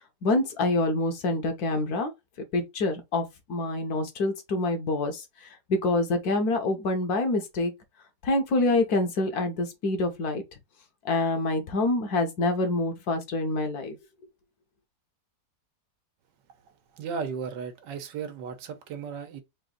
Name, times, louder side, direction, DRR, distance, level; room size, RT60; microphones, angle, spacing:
voice 1, 0.2-2.1 2.5-5.2 5.7-7.7 8.2-10.4 11.0-14.0, left 2 dB, 65° left, 1.4 m, -26 dB
voice 2, 16.9-19.4, right 6 dB, 90° right, 1.4 m, -35 dB
4.0 x 2.6 x 3.8 m
omnidirectional pair, 1.8 m